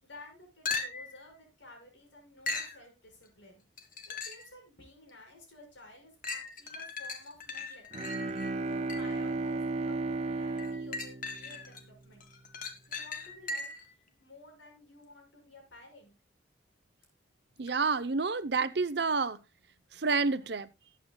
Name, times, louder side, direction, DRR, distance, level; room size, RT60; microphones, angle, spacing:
voice 1, 0.0-3.6 4.1-7.8 8.4-12.3 12.9-16.1, left 2 dB, 80° left, 6.2 m, -53 dB
sound 1, 0.7-1.2 2.5-2.8 3.8-4.5 5.1-5.2 6.2-9.2 10.6-11.8 12.2-13.9 17.7-17.8, left 3 dB, 45° left, 1.9 m, -38 dB
Bowed string instrument, 7.9-12.2, right 3 dB, 35° right, 0.5 m, -34 dB
voice 2, 17.6-19.4 19.9-20.7, right 4 dB, 60° right, 0.8 m, -29 dB
19.5 x 8.6 x 2.3 m
head